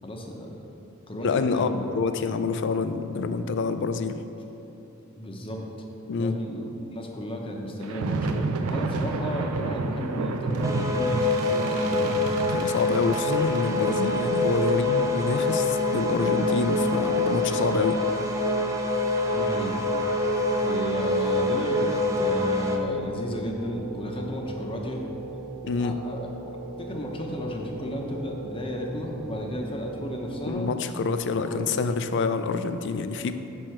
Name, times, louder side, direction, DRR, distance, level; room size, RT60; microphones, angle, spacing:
voice 1, 0.0-0.6 1.1-1.8 2.2-2.4 5.2-5.6 6.2-12.3 19.3-19.8 20.6-25.0 25.8-26.3 26.8-30.7 31.4-31.7 33.2-33.3, left 1 dB, 25° left, 0 dB, 0.8 m, -33 dB
voice 2, 1.2-4.2 6.1-6.3 12.5-18.0 25.6-26.0 30.5-33.4, left 4 dB, 55° left, 10 dB, 0.4 m, -27 dB
sound 1, 7.8-18.4, right 3 dB, 80° right, 0.4 m, -32 dB
sound 2, 10.6-22.8, left 2 dB, 15° right, 0.5 m, -25 dB
sound 3, 13.3-30.5, right 4 dB, 45° right, 0.9 m, -40 dB
6.4 x 6.2 x 4.4 m, 3.0 s
head